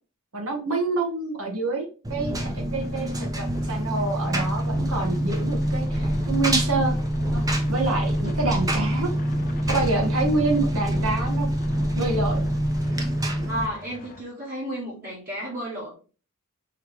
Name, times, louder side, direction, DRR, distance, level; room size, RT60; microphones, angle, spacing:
voice 1, 0.3-7.0 7.3-9.1 9.7-11.5 11.9-12.5, right 3 dB, 65° right, 1.4 m, -27 dB
Engine, 2.0-13.7, equal, 15° right, 0.7 m, -25 dB
sound 1, 2.8-14.2, left 2 dB, 40° left, 0.7 m, -44 dB
voice 2, 13.5-15.9, equal, 40° right, 1.7 m, -32 dB
4.7 x 3.1 x 3.4 m
head